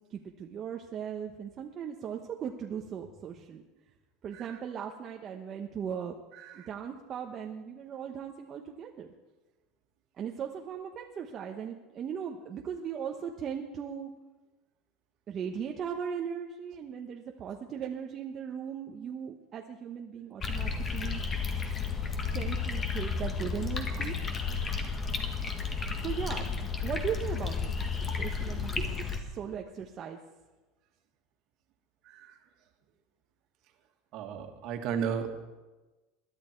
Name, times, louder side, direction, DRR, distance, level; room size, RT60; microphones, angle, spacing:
voice 1, 0.1-3.6 4.2-6.1 6.5-9.1 10.2-14.1 15.3-21.2 22.3-24.1 25.9-26.4 26.8-30.2, right 7 dB, 30° right, 1 dB, 1.0 m, -38 dB
sound 1, 20.4-29.2, left 5 dB, 25° left, 1.7 m, -32 dB
voice 2, 34.1-35.3, right 7 dB, 50° right, 4 dB, 2.0 m, -34 dB
21.5 x 11.0 x 4.5 m, 1.2 s
supercardioid pair, 140°, 0 cm